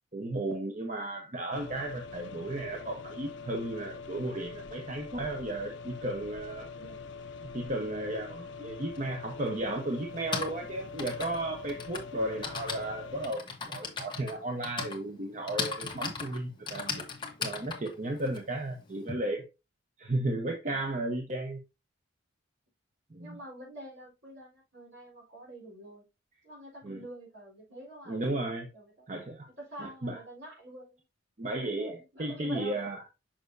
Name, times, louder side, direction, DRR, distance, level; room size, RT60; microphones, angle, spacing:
voice 1, 0.1-6.7 7.5-17.1 17.4-19.4 20.0-21.6 23.1-23.4 26.8-27.0 28.1-28.7 29.1-29.5 29.8-30.2 31.4-33.0, right 1 dB, 35° right, 0.8 m, -34 dB
sound 1, 1.5-13.3, left 5 dB, 60° left, 0.5 m, -44 dB
voice 2, 6.8-7.1 23.2-26.0 26.4-28.2 28.7-29.1 29.6-31.0 31.8-32.8, right 1 dB, 60° right, 3.9 m, -47 dB
Typing, 8.9-9.0 10.0-19.1, left 4 dB, 25° left, 1.1 m, -38 dB
6.5 x 5.9 x 2.6 m
head